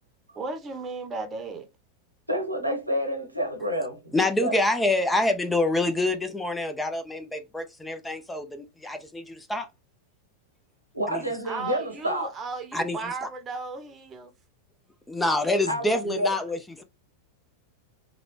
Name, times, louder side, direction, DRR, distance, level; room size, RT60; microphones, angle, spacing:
voice 1, 0.3-1.7 11.4-14.3, right 4 dB, 20° right, 0.9 m, -35 dB
voice 2, 2.3-4.6 10.9-12.3 15.7-16.4, equal, 90° right, 1.0 m, -29 dB
voice 3, 4.1-9.7 11.1-11.2 12.7-13.0 15.1-16.8, left 2 dB, 5° left, 0.5 m, -26 dB
3.9 x 2.2 x 3.1 m
figure-of-eight pair, 90°, 0 cm